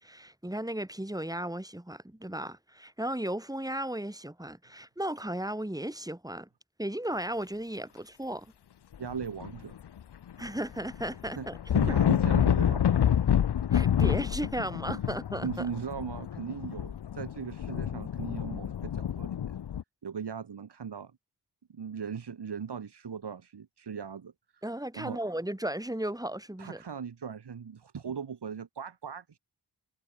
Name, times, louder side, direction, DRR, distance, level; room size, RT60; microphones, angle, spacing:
voice 1, 0.0-6.5 6.8-8.5 10.4-11.6 11.9-12.0 13.7-15.7 24.6-26.8, right 1 dB, 10° right, 6.2 m, -35 dB
sound 1, 9.0-10.0 10.3-19.8, left 9 dB, 75° left, 0.9 m, -28 dB
voice 2, 9.0-9.8 11.4-13.2 15.4-19.6 20.0-21.1 21.7-24.6 25.0-25.2 26.6-29.4, right 6 dB, 80° right, 2.7 m, -39 dB
wide cardioid pair, 80°, 40 cm